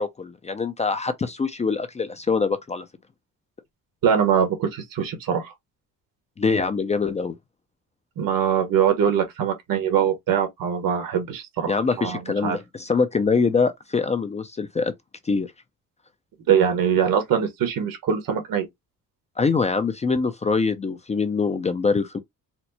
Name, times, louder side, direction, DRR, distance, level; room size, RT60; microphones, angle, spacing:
voice 1, 0.0-2.9 6.4-7.4 11.7-14.9 15.3-15.5 19.4-22.2, left 4 dB, 20° left, 0.3 m, -24 dB
voice 2, 4.0-5.5 8.2-12.6 16.5-18.7, right 8 dB, 80° right, 1.2 m, -22 dB
4.3 x 2.0 x 2.7 m
cardioid pair, 130°, 33 cm